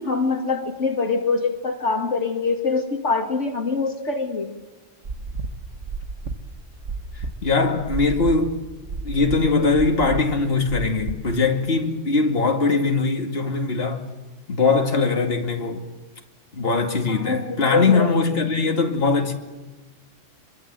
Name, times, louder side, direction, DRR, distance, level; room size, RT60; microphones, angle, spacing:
voice 1, 0.0-4.5 17.1-18.1, left 4 dB, 70° left, 2.4 m, -24 dB
sound 1, 5.0-11.3, right 3 dB, 75° right, 2.0 m, -32 dB
voice 2, 7.1-8.6 9.0-14.1 14.5-15.8 16.5-19.3, left 4 dB, 50° left, 2.5 m, -21 dB
25.5 x 23.5 x 7.6 m
omnidirectional pair, 1.3 m